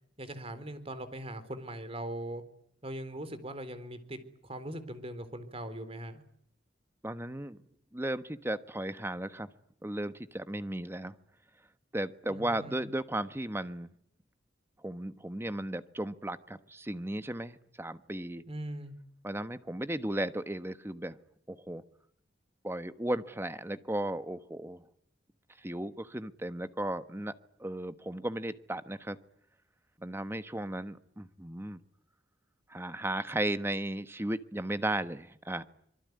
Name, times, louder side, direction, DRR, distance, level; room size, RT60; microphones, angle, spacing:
voice 1, 0.2-2.4 2.8-6.2 12.3-12.9 18.5-19.0, right 1 dB, 30° right, 11 dB, 4.0 m, -40 dB
voice 2, 7.0-7.6 7.9-9.5 9.8-11.1 11.9-13.9 14.8-18.4 19.2-21.2 21.5-21.8 22.6-24.8 25.6-27.3 27.6-29.2 30.0-31.8 32.7-35.6, right 1 dB, 15° right, 11 dB, 1.3 m, -35 dB
26.0 x 23.5 x 9.5 m, 0.68 s
head